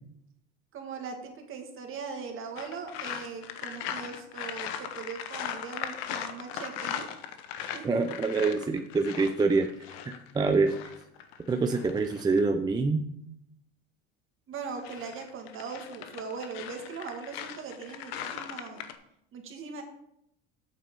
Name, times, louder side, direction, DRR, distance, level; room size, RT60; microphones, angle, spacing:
voice 1, 0.7-7.1 7.7-8.2 14.5-18.8 19.3-19.8, right 5 dB, 45° right, 3 dB, 2.1 m, -40 dB
sound 1, 2.6-12.4 14.6-19.0, left 9 dB, 90° left, 0.9 m, -39 dB
voice 2, 7.8-9.7 10.1-10.8 11.5-13.0, right 3 dB, 15° right, 6 dB, 0.4 m, -26 dB
8.5 x 5.9 x 5.4 m, 0.78 s
supercardioid pair, 120°, 30 cm